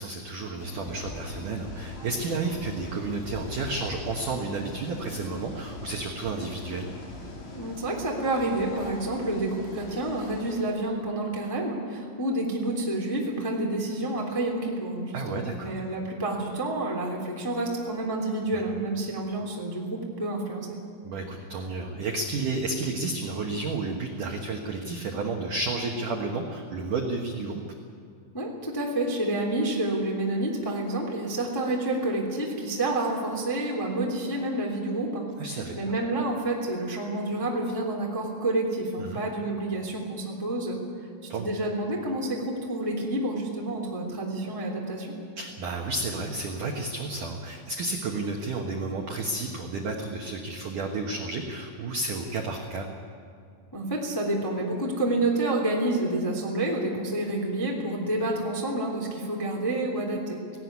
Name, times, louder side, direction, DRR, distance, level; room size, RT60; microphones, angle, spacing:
voice 1, 0.0-6.9 15.1-15.8 21.0-27.6 35.4-35.8 39.0-39.2 41.3-41.5 45.4-52.9, right 3 dB, 75° right, 1 dB, 1.8 m, -31 dB
sound 1, 0.6-10.6, left 2 dB, 50° left, 5.1 m, -41 dB
voice 2, 7.5-20.8 28.3-35.2 35.7-40.8 41.4-45.1 53.7-60.6, right 1 dB, 10° left, -1 dB, 1.4 m, -29 dB
18.0 x 17.5 x 9.6 m, 2.4 s
omnidirectional pair, 5.9 m